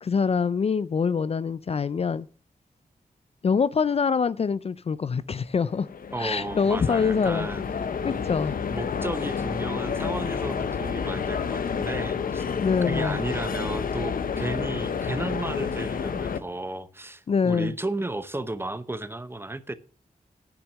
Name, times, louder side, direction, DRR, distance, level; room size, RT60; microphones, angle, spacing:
voice 1, 0.0-2.3 3.4-5.9 6.2-7.5 8.0-8.5 12.6-13.2 17.3-17.7, left 5 dB, 45° left, 0.4 m, -25 dB
sound 1, 5.5-16.4, left 6 dB, 80° left, 0.8 m, -30 dB
voice 2, 6.1-7.6 8.7-12.4 12.9-19.7, right 2 dB, 15° right, 0.8 m, -33 dB
9.9 x 6.0 x 7.3 m
wide cardioid pair, 105°, 14 cm